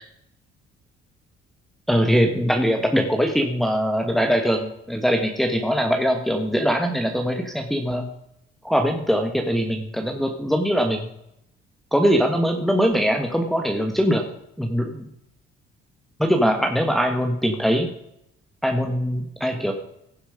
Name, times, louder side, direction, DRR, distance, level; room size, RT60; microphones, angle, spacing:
voice 1, 1.9-8.1 8.6-11.1 11.9-14.3 14.6-15.1 16.2-17.9 18.6-19.7, equal, ahead, 3 dB, 1.4 m, -22 dB
16.0 x 7.2 x 5.0 m, 0.78 s
cardioid pair, 110°, 17 cm